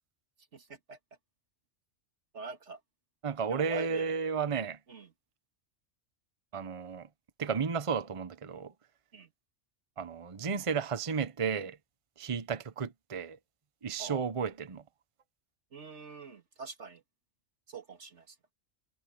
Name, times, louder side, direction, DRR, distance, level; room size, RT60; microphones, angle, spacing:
voice 1, 0.5-1.0 2.3-2.8 3.5-4.2 4.9-5.1 9.1-9.3 14.0-14.2 15.7-17.0 17.7-18.4, right 4 dB, 80° right, 2.5 m, -44 dB
voice 2, 3.2-4.8 6.5-7.1 7.4-8.7 10.0-11.8 12.2-13.4 13.8-14.8, right 6 dB, 30° right, 0.9 m, -33 dB
omnidirectional pair, 1.2 m